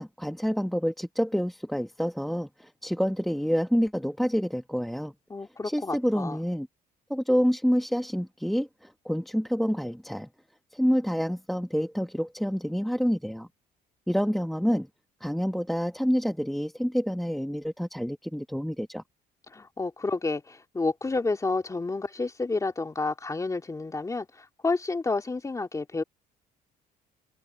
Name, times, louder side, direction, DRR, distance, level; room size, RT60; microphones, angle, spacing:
voice 1, 0.0-5.1 5.6-6.7 7.1-10.3 10.7-13.5 14.1-14.9 15.2-19.0, equal, ahead, 1.4 m, -27 dB
voice 2, 5.3-6.4 19.5-26.0, left 3 dB, 20° left, 3.0 m, -30 dB
open air
cardioid pair, 110°, 17 cm